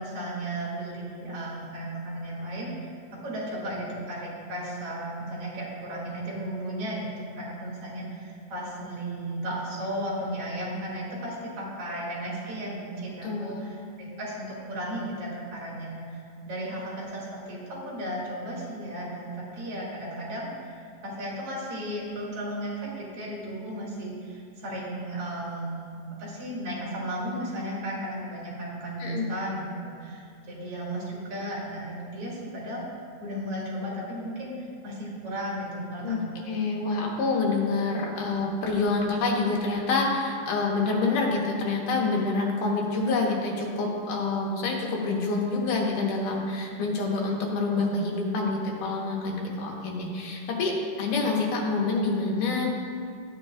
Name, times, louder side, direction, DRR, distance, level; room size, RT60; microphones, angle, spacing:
voice 1, 0.0-2.7 3.2-7.1 7.4-32.8 33.2-34.5 34.8-36.6, right 1 dB, 45° right, -6 dB, 3.2 m, -35 dB
voice 2, 13.2-13.7 29.0-29.3 36.0-36.2 36.5-52.7, left 3 dB, 80° left, -1 dB, 2.8 m, -27 dB
14.0 x 8.6 x 2.4 m, 2.3 s
omnidirectional pair, 3.8 m